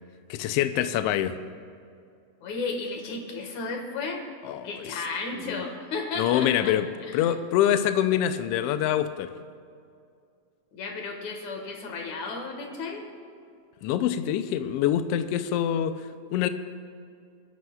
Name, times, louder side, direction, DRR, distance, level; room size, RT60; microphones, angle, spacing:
voice 1, 0.3-1.4 4.4-5.0 5.5-5.6 6.2-6.9 7.1-9.3 13.8-16.5, left 11 dB, 90° left, 10 dB, 1.3 m, -25 dB
voice 2, 2.4-4.2 4.6-6.7 7.0-7.3 10.7-13.0, left 3 dB, 70° left, 2 dB, 2.9 m, -33 dB
27.5 x 11.0 x 2.4 m, 2.3 s
omnidirectional pair, 3.5 m